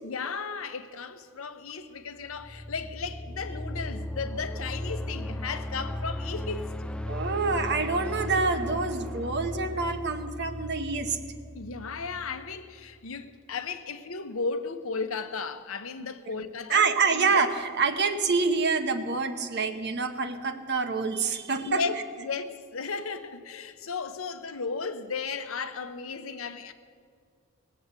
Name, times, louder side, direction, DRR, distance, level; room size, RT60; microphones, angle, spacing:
voice 1, 0.0-6.7 11.5-16.8 17.1-17.3 21.6-26.7, left 4 dB, 70° left, 0.9 m, -35 dB
sound 1, 2.2-13.0, left 1 dB, 5° left, 0.3 m, -36 dB
voice 2, 7.1-11.2 16.3-16.4 16.7-21.8, right 4 dB, 50° right, 1.0 m, -26 dB
18.5 x 7.8 x 8.2 m
head